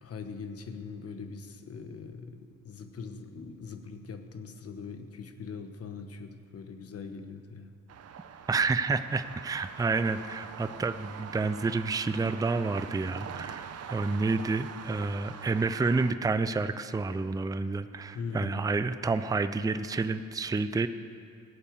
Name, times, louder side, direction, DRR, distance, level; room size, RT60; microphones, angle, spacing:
voice 1, 0.0-7.7 18.1-18.7, left 5 dB, 50° left, 7 dB, 1.3 m, -41 dB
sound 1, 7.9-16.1, right 8 dB, 55° right, 0.9 m, -44 dB
voice 2, 8.5-20.9, right 3 dB, 10° right, 11 dB, 0.5 m, -29 dB
17.0 x 8.6 x 7.0 m, 2.3 s
cardioid pair, 90°, 30 cm